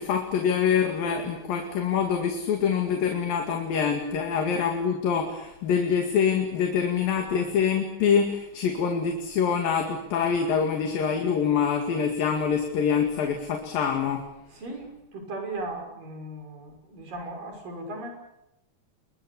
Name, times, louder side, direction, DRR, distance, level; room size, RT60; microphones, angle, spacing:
voice 1, 0.0-14.2, left 7 dB, 75° left, 3 dB, 4.0 m, -25 dB
voice 2, 14.5-18.1, right 2 dB, 65° right, 3 dB, 7.8 m, -37 dB
29.0 x 22.5 x 7.1 m, 0.86 s
omnidirectional pair, 4.1 m